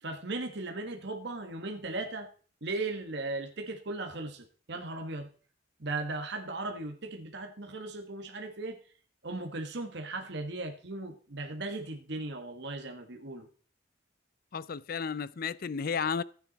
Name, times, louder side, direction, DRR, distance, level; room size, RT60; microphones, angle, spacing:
voice 1, 0.0-2.3 2.6-5.3 5.8-8.8 9.2-13.5, right 2 dB, 60° right, 1.4 m, -37 dB
voice 2, 14.5-16.2, left 6 dB, 50° left, 0.5 m, -33 dB
15.0 x 9.4 x 4.0 m
head